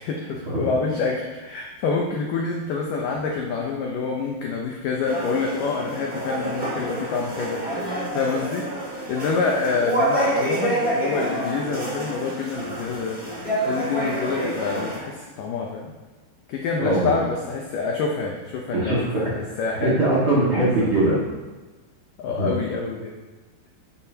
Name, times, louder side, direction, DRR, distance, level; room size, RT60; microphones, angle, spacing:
voice 1, 0.0-7.6 8.1-8.7 9.1-13.2 13.7-15.9 16.5-19.3 19.6-20.0 20.8-20.9 22.2-23.1, left 4 dB, 85° left, 0 dB, 1.8 m, -27 dB
sound 1, 5.0-15.0, right 1 dB, 20° right, 1.5 m, -28 dB
voice 2, 16.8-17.1 18.7-19.2 19.8-21.2 22.4-22.5, right 2 dB, 50° right, -8 dB, 1.6 m, -21 dB
9.5 x 9.1 x 2.8 m, 1.2 s
omnidirectional pair, 4.9 m